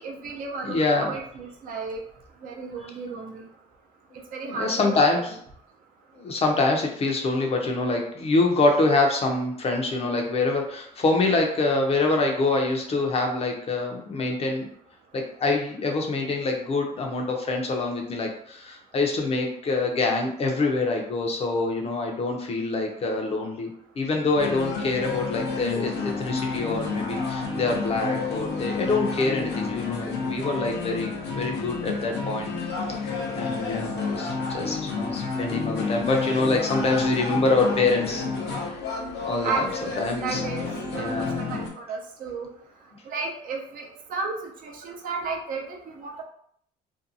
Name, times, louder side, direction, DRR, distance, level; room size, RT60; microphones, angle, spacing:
voice 1, 0.0-2.0 2.4-3.4 4.3-5.1 33.7-33.8 39.4-40.7 40.9-42.5 43.1-44.3 44.6-46.2, right 4 dB, 55° right, 0 dB, 0.6 m, -33 dB
voice 2, 0.6-1.2 4.4-5.4 6.2-14.7 15.1-23.7 24.0-32.5 33.3-38.2 38.6-38.8 39.2-39.7 40.0-40.4 40.9-41.4, left 3 dB, 35° left, 2 dB, 0.6 m, -25 dB
sound 1, 24.3-41.7, left 4 dB, 80° left, 0.7 m, -30 dB
2.6 x 2.2 x 2.6 m, 0.66 s
cardioid pair, 110°, 17 cm